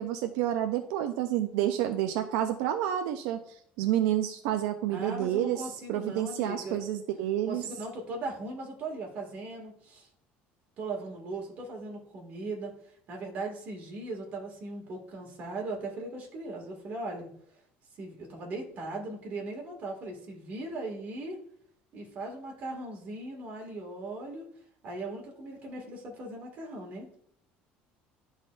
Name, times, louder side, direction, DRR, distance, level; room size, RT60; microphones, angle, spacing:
voice 1, 0.0-7.6, right 11 dB, 85° right, 6 dB, 0.5 m, -29 dB
voice 2, 4.9-6.8 7.5-10.1 10.8-12.7 13.1-17.3 18.0-21.4 21.9-24.5 24.8-27.1, right 2 dB, 40° right, 0 dB, 2.0 m, -38 dB
12.0 x 4.0 x 2.5 m, 0.65 s
cardioid pair, 155°, 4 cm